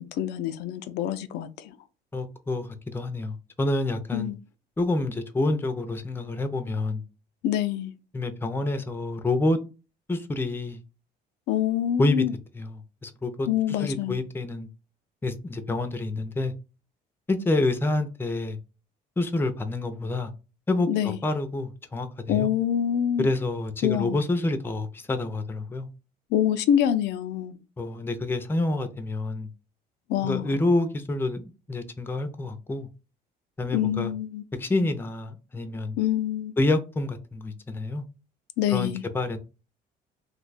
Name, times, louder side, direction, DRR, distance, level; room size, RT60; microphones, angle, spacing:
voice 1, 0.0-1.7 4.1-4.4 7.4-7.9 11.5-12.3 13.5-14.2 20.9-21.2 22.3-23.3 23.8-24.2 26.3-27.6 30.1-30.7 33.7-34.4 36.0-36.5 38.6-39.0, left 10 dB, 80° left, 0.4 m, -26 dB
voice 2, 2.1-4.3 4.8-7.0 8.1-9.6 10.1-10.8 12.0-12.3 12.5-14.7 15.2-16.5 17.3-18.6 19.2-20.3 20.7-22.5 23.2-25.9 27.8-29.5 30.2-32.9 33.6-34.1 34.6-36.0 36.6-38.0 38.7-39.4, left 2 dB, 15° left, 0.5 m, -28 dB
2.7 x 2.2 x 3.9 m
cardioid pair, 110°, 17 cm